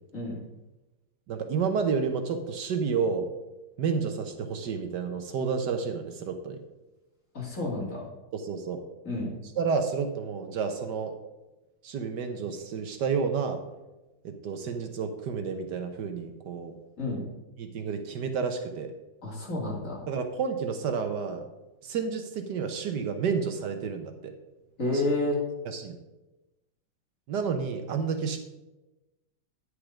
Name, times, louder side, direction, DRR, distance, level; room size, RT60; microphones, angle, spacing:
voice 1, 1.3-3.3 3.8-6.6 8.3-8.8 9.6-11.1 11.8-13.6 14.2-16.8 17.6-18.9 20.1-21.4 21.8-24.3 25.7-25.9 27.3-28.4, right 5 dB, 70° right, 7 dB, 1.4 m, -30 dB
voice 2, 7.3-8.1 9.0-9.3 17.0-17.2 19.2-20.0 24.8-25.4, left 2 dB, 45° left, -4 dB, 3.0 m, -30 dB
9.8 x 6.6 x 5.0 m, 1.0 s
omnidirectional pair, 2.0 m